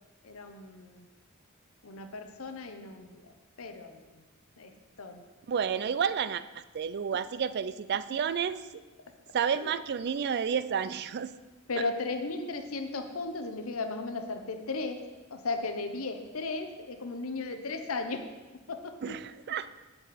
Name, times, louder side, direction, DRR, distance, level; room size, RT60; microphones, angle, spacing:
voice 1, 0.2-1.1 1.8-4.2 4.6-4.7 5.0-5.2 9.5-9.8 11.7-15.0 15.3-18.2 18.7-19.2, left 3 dB, 75° left, 6 dB, 0.9 m, -36 dB
voice 2, 5.5-8.6 9.3-11.3 19.0-19.7, right 7 dB, 50° right, 15 dB, 0.4 m, -30 dB
8.6 x 7.8 x 4.3 m, 1.2 s
head